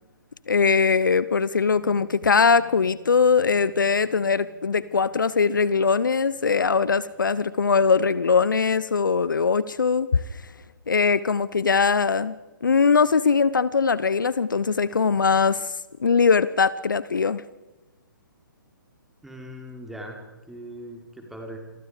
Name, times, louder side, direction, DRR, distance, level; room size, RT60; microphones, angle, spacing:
voice 1, 0.5-10.2 10.9-12.3 12.6-15.7 16.0-17.4, left 5 dB, 70° left, 17 dB, 0.9 m, -21 dB
Bass guitar, 1.8-8.0, left 5 dB, 20° left, 6.7 m, -53 dB
voice 2, 19.2-20.2 20.5-21.6, equal, ahead, 2 dB, 4.2 m, -39 dB
28.0 x 24.0 x 5.1 m, 1.1 s
figure-of-eight pair, 130°, 11 cm